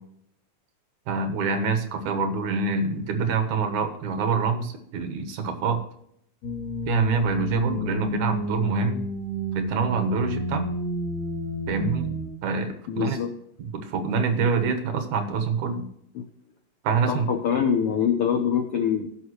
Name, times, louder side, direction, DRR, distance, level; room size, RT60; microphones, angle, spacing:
voice 1, 1.1-5.8 6.9-9.0 9.5-10.7 11.7-12.1 12.4-13.2 13.7-15.9 16.8-17.3, right 5 dB, 70° right, 7 dB, 2.4 m, -25 dB
sound 1, 6.4-12.3, equal, 60° left, 3.0 m, -30 dB
voice 2, 12.9-13.3 16.1-16.3 17.1-19.1, left 7 dB, 85° left, 5 dB, 1.2 m, -24 dB
15.5 x 5.8 x 3.1 m, 0.72 s
omnidirectional pair, 3.7 m